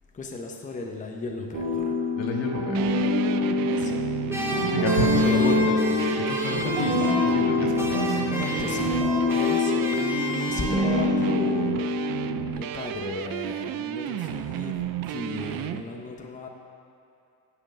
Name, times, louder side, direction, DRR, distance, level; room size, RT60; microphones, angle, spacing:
voice 1, 0.1-2.0 3.7-4.1 5.2-5.7 8.1-9.0 9.4-12.0 12.5-16.5, left 3 dB, 20° left, 2 dB, 0.8 m, -35 dB
sound 1, 1.5-12.5, left 2 dB, 90° right, 2.6 m, -25 dB
voice 2, 2.1-3.1 4.7-8.2, left 2 dB, 80° left, 0 dB, 1.9 m, -30 dB
sound 2, 2.7-15.8, right 12 dB, 55° right, 0.5 m, -33 dB
sound 3, 4.3-7.5 7.8-11.2, left 1 dB, 5° right, 1.1 m, -33 dB
10.5 x 7.8 x 5.5 m, 2.7 s
cardioid pair, 140°, 43 cm